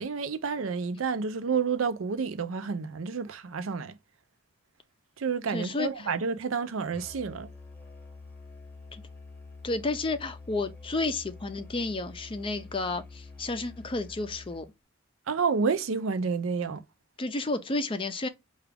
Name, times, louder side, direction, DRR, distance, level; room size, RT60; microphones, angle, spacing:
voice 1, 0.0-4.0 5.2-7.5 15.3-16.8, right 5 dB, 75° right, 0.5 m, -29 dB
voice 2, 5.5-6.1 8.9-9.0 9.6-14.7 17.2-18.3, left 2 dB, 25° left, 0.5 m, -31 dB
Musical instrument, 6.9-14.7, left 3 dB, 10° left, 0.9 m, -47 dB
4.8 x 2.4 x 3.3 m
head